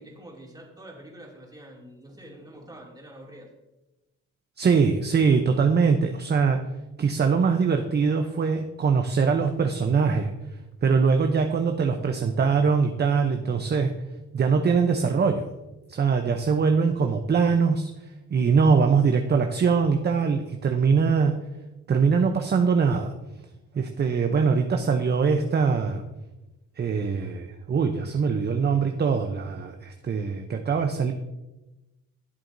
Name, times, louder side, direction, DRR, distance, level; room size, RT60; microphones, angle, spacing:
voice 1, 0.0-3.5, right 1 dB, 15° right, -2 dB, 2.6 m, -46 dB
voice 2, 4.6-6.6 7.0-10.3 10.8-13.9 14.3-15.5 15.9-17.9 18.3-21.3 21.9-23.1 23.7-26.0 26.8-31.1, right 5 dB, 35° right, 5 dB, 0.7 m, -22 dB
12.0 x 7.5 x 2.6 m, 1.0 s
cardioid pair, 90°, 30 cm